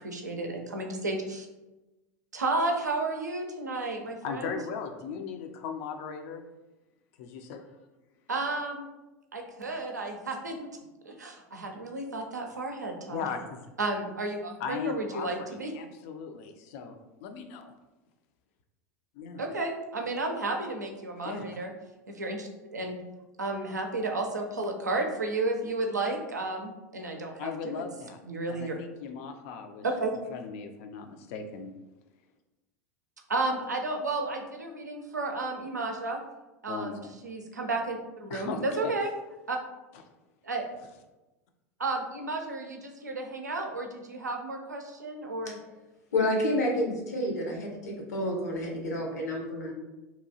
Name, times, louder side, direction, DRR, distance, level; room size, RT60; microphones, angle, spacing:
voice 1, 0.0-1.5 2.3-4.6 8.3-8.9 9.3-10.7 11.0-13.3 13.8-15.7 19.4-21.7 22.1-23.0 23.4-27.8 28.2-28.8 29.8-30.1 33.3-36.2 36.6-39.1 39.5-39.6 40.4-40.7 41.8-45.6, right 2 dB, 85° right, 2 dB, 0.4 m, -32 dB
voice 2, 4.2-6.4 7.2-7.6 13.1-13.7 14.6-17.7 19.2-19.4 21.2-21.6 27.4-28.2 28.5-29.8 30.1-31.7 36.7-36.9 38.3-38.9 39.9-40.0, left 6 dB, 55° left, 6 dB, 0.4 m, -38 dB
voice 3, 46.1-49.7, left 1 dB, 70° left, 0 dB, 0.7 m, -29 dB
2.8 x 2.3 x 2.7 m, 1.0 s
figure-of-eight pair, 80°, 9 cm